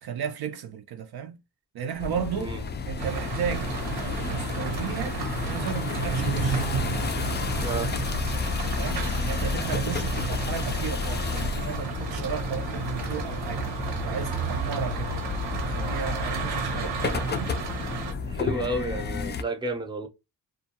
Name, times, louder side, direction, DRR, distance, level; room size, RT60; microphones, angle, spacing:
voice 1, 0.0-1.4 1.7-2.6 2.9-3.8 4.3-5.2 5.5-6.6 8.7-13.7 14.0-15.1 15.6-17.6, right 7 dB, 60° right, 0.5 m, -34 dB
sound 1, 2.0-19.4, left 5 dB, 25° left, 0.3 m, -32 dB
sound 2, 3.0-18.1, right 4 dB, 80° right, 1.0 m, -32 dB
voice 2, 7.6-7.9 18.3-20.1, right 1 dB, 10° right, 0.6 m, -31 dB
2.3 x 2.3 x 2.8 m
cardioid pair, 75°, 43 cm